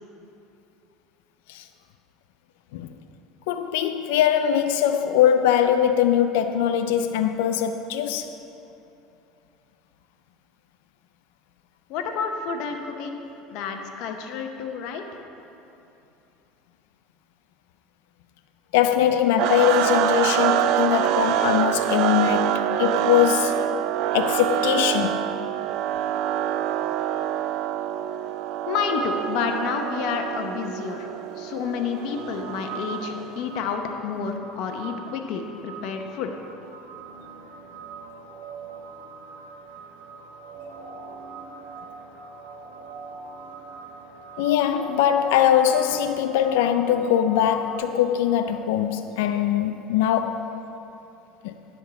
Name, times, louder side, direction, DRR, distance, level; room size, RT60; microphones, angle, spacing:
voice 1, 3.5-8.3 18.7-23.6 24.1-25.2 44.4-50.5 51.4-51.5, left 10 dB, 85° left, 0.4 m, -22 dB
voice 2, 11.9-13.2 13.5-15.0 28.7-31.1 31.4-36.3, left 5 dB, 65° left, 0.8 m, -29 dB
sound 1, 19.4-33.5, right 11 dB, 65° right, 0.3 m, -26 dB
sound 2, 32.0-47.8, right 4 dB, 85° right, 1.2 m, -42 dB
10.5 x 3.6 x 7.3 m
supercardioid pair, 115°, 0 cm